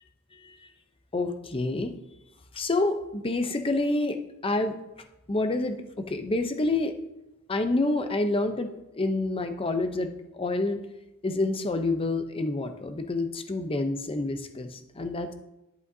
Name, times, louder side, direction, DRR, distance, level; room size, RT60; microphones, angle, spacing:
voice 1, 1.1-1.9 2.5-4.8 5.3-6.9 7.5-10.8 11.2-15.3, left 2 dB, 25° left, 7 dB, 0.7 m, -28 dB
11.0 x 8.1 x 2.7 m, 0.92 s
head